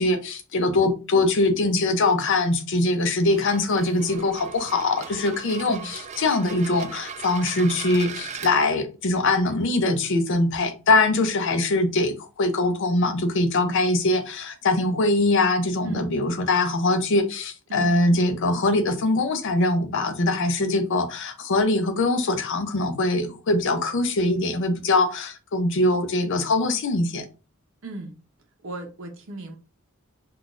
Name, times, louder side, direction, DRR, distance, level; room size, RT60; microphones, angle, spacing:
voice 1, 0.0-27.3, left 2 dB, 60° left, 0.5 m, -22 dB
sound 1, 3.2-8.5, right 6 dB, 35° right, 0.3 m, -38 dB
voice 2, 27.8-28.1 28.6-29.6, right 1 dB, 65° right, 0.6 m, -37 dB
3.7 x 2.3 x 2.4 m
head